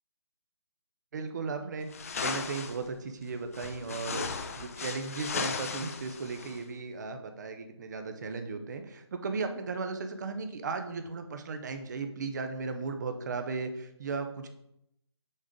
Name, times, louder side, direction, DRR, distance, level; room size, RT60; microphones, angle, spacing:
voice 1, 1.1-1.9 2.2-14.5, right 4 dB, 40° right, 7 dB, 0.7 m, -36 dB
sound 1, 1.9-2.8 3.5-6.6, left 5 dB, 30° left, 0.4 m, -36 dB
6.3 x 3.6 x 5.1 m, 0.79 s
figure-of-eight pair, 150°, 15 cm